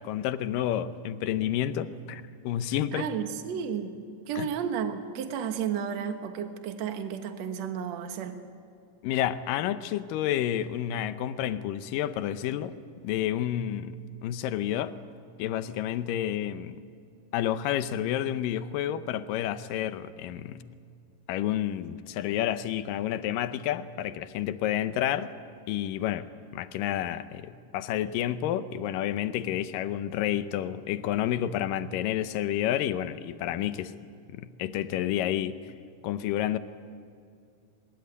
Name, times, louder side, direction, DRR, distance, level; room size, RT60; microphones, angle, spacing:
voice 1, 0.0-3.1 4.4-4.5 9.0-12.8 13.0-14.0 14.2-15.0 15.4-16.8 17.3-20.6 21.3-25.3 25.7-26.3 26.5-33.9 34.3-35.6 36.0-36.6, left 11 dB, 90° left, 12 dB, 2.5 m, -30 dB
voice 2, 2.9-4.0 4.3-8.4, right 7 dB, 60° right, 7 dB, 2.3 m, -32 dB
22.5 x 21.0 x 9.5 m, 2.3 s
omnidirectional pair, 3.8 m